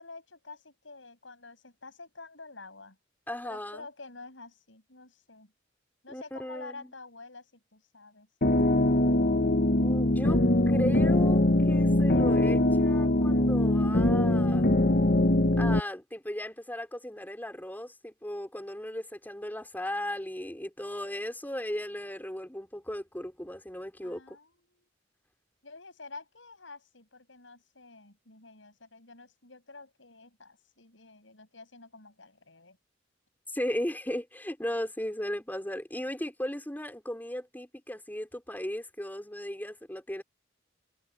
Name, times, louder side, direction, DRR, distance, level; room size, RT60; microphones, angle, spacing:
voice 1, 0.0-3.0 3.4-5.5 6.0-9.1 24.0-24.9 25.6-32.8, left 3 dB, 80° left, 7.8 m, -49 dB
voice 2, 3.3-3.9 6.1-6.9 9.8-11.4 11.7-14.7 15.6-24.4 33.5-40.2, left 1 dB, 10° left, 5.1 m, -36 dB
sound 1, 8.4-15.8, left 1 dB, 50° left, 1.3 m, -23 dB
head